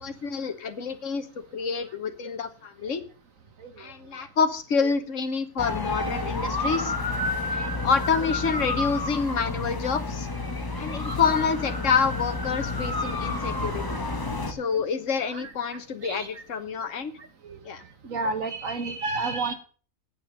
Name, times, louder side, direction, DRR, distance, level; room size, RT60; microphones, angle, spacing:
voice 1, 0.0-1.3 1.5-3.0 3.8-6.9 7.5-10.3 10.8-13.8 14.5-17.1 17.6-17.8, left 5 dB, 65° left, 10 dB, 1.5 m, -27 dB
sound 1, 5.6-14.5, left 2 dB, 15° left, 1.1 m, -30 dB
voice 2, 18.0-19.5, right 3 dB, 70° right, 8 dB, 1.9 m, -30 dB
9.0 x 8.4 x 6.8 m, 0.39 s
omnidirectional pair, 1.4 m